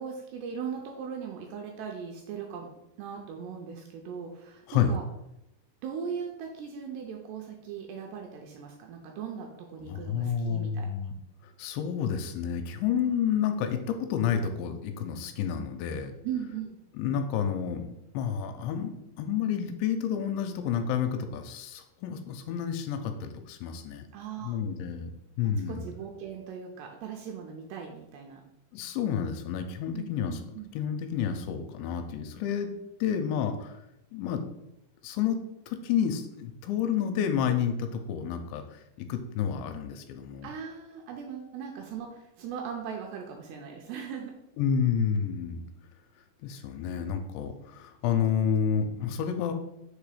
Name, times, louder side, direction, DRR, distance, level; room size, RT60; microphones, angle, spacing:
voice 1, 0.0-5.0 5.8-10.9 16.2-16.8 24.1-24.6 25.7-28.4 29.9-30.7 40.4-44.4, right 7 dB, 80° right, 2 dB, 2.4 m, -39 dB
voice 2, 9.9-11.1 11.6-16.1 17.0-24.0 24.4-25.1 25.4-25.9 28.7-30.4 30.7-32.7 33.0-33.8 34.1-34.4 35.0-35.4 35.7-38.6 39.0-40.5 44.6-45.6 46.4-49.5, left 8 dB, 85° left, 7 dB, 2.8 m, -30 dB
6.6 x 3.0 x 4.9 m, 0.85 s
omnidirectional pair, 5.2 m